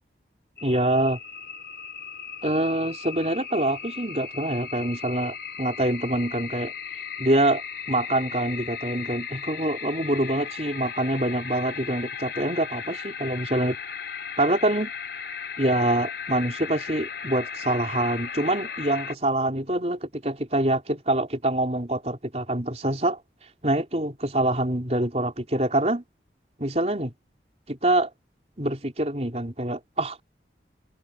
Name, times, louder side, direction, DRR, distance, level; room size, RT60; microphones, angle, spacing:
sound 1, 0.6-19.1, left 7 dB, 70° left, 3.6 m, -36 dB
voice 1, 0.6-1.2 2.4-6.7 7.2-13.8 14.4-14.9 15.6-23.2 23.6-26.0 26.6-27.1 27.7-28.1 28.6-30.2, right 1 dB, 35° right, 4.1 m, -25 dB
head